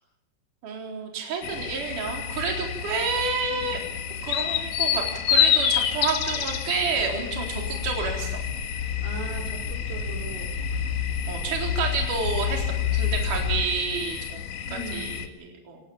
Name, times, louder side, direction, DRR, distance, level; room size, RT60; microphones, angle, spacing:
voice 1, 0.6-3.8 4.2-8.4 11.3-14.4 14.7-15.8, right 5 dB, 45° right, 0 dB, 5.2 m, -29 dB
sound 1, 1.4-15.3, left 9 dB, 65° left, 1.9 m, -29 dB
sound 2, 6.5-13.6, left 7 dB, 35° left, 4.0 m, -30 dB
voice 2, 9.0-10.5 14.7-15.1, right 3 dB, 85° right, 0 dB, 7.0 m, -39 dB
28.5 x 19.0 x 7.2 m, 0.85 s
omnidirectional pair, 5.6 m